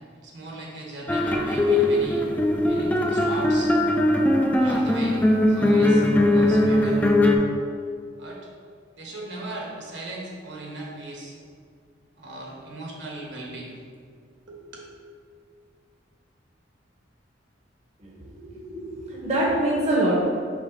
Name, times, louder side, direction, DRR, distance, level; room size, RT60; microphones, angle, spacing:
voice 1, 0.2-2.3 2.6-3.7 4.6-5.2 5.5-7.0 8.2-8.4 8.9-11.3 12.2-13.8 14.5-14.9, right 2 dB, 65° right, -3 dB, 1.2 m, -38 dB
sound 1, 1.1-7.3, left 1 dB, 10° left, 0.4 m, -20 dB
voice 2, 18.0-20.1, right 1 dB, 35° right, -5 dB, 0.9 m, -25 dB
5.1 x 3.6 x 5.3 m, 2.2 s
head